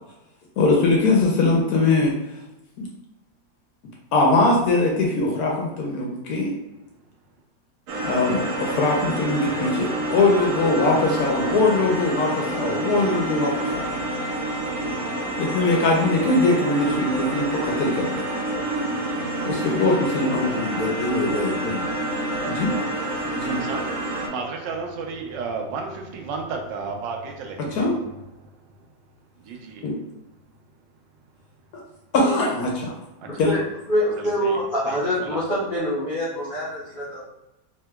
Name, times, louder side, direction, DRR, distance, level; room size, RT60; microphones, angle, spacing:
voice 1, 0.6-2.1 2.8-2.9 4.1-6.5 8.0-13.9 15.4-18.2 19.4-21.9 22.5-22.7 23.4-23.6 27.7-27.9 29.8-29.9 32.1-32.9 33.4-33.5, left 2 dB, 70° left, -1 dB, 0.9 m, -21 dB
sound 1, 7.9-24.3, right 1 dB, 70° right, 0.8 m, -28 dB
voice 2, 23.5-23.9 24.3-28.5 29.4-29.9 33.2-33.3 34.2-34.6 34.8-35.4, right 4 dB, 85° right, 2 dB, 1.3 m, -33 dB
voice 3, 33.3-33.6 33.9-37.2, equal, 90° left, -8 dB, 0.4 m, -25 dB
3.5 x 2.9 x 2.2 m, 0.94 s
omnidirectional pair, 1.9 m